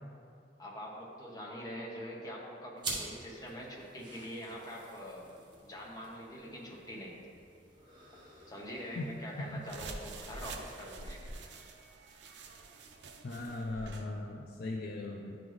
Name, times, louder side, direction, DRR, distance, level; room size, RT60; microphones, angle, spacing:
voice 1, 0.6-5.3 5.6-7.2 8.5-11.2, equal, 20° left, -4 dB, 1.0 m, -44 dB
sound 1, 2.8-11.8, right 3 dB, 25° right, 1.0 m, -48 dB
sound 2, 9.6-14.1, right 3 dB, 70° right, 0.5 m, -46 dB
voice 2, 13.2-15.4, left 2 dB, 55° left, 1 dB, 0.4 m, -39 dB
10.5 x 3.9 x 3.1 m, 2.4 s
head